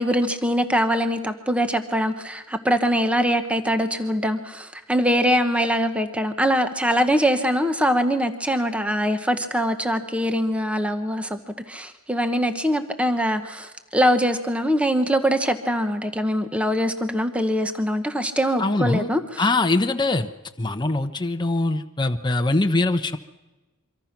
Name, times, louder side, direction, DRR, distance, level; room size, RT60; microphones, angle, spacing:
voice 1, 0.0-11.4 11.7-19.4, equal, 5° right, 7 dB, 1.1 m, -23 dB
voice 2, 18.6-19.1 19.4-20.3 20.6-23.2, left 2 dB, 20° left, 6 dB, 0.9 m, -22 dB
24.5 x 24.5 x 6.0 m, 1.1 s
head